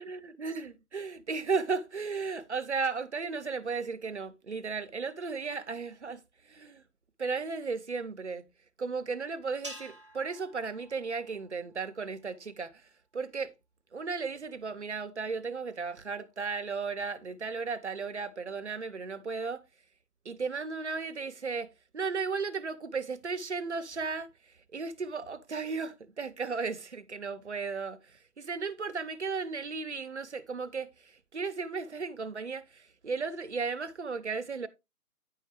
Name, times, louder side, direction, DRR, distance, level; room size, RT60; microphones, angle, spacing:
voice 1, 0.0-6.8 7.2-8.5 8.8-13.5 13.9-19.6 20.2-34.7, right 4 dB, 50° right, 0.7 m, -35 dB
sound 1, 9.6-12.1, right 1 dB, 20° right, 0.8 m, -49 dB
9.7 x 5.5 x 3.2 m
hypercardioid pair, 175°, 45 cm